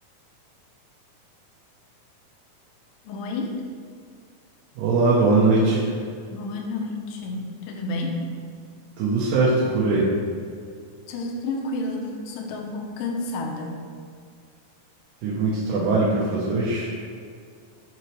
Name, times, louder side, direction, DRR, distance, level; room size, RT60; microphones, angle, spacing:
voice 1, 3.0-3.6 6.3-8.3 11.1-13.9, left 2 dB, 80° left, 1 dB, 2.2 m, -30 dB
voice 2, 4.8-5.9 9.0-10.1 15.2-16.9, right 3 dB, 75° right, -7 dB, 2.2 m, -21 dB
6.1 x 6.0 x 3.1 m, 2.2 s
omnidirectional pair, 4.3 m